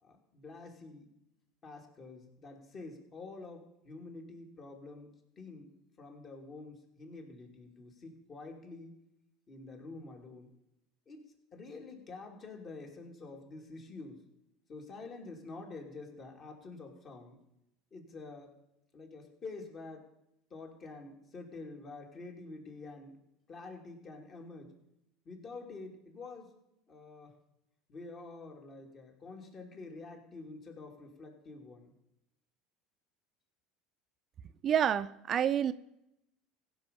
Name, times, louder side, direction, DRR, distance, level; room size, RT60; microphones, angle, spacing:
voice 1, 0.0-1.1 1.6-5.7 6.0-9.0 9.5-10.5 11.1-14.2 14.7-17.4 17.9-18.5 18.9-20.1 20.5-23.2 23.5-24.7 25.2-26.5 26.9-27.4 27.9-31.9, left 3 dB, 40° left, 3 dB, 2.8 m, -48 dB
voice 2, 34.6-35.7, right 9 dB, 40° right, 13 dB, 0.5 m, -28 dB
16.0 x 5.6 x 6.9 m, 0.83 s
supercardioid pair, 100°, 0 cm